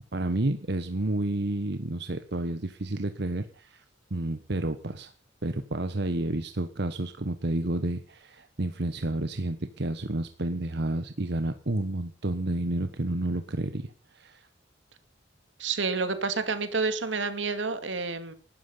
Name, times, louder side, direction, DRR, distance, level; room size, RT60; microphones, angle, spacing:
voice 1, 0.1-3.8 4.1-5.1 5.4-14.5, right 1 dB, 65° right, 9 dB, 1.2 m, -30 dB
voice 2, 15.6-18.3, right 4 dB, 85° right, 10 dB, 2.4 m, -29 dB
19.5 x 12.5 x 5.6 m, 0.41 s
head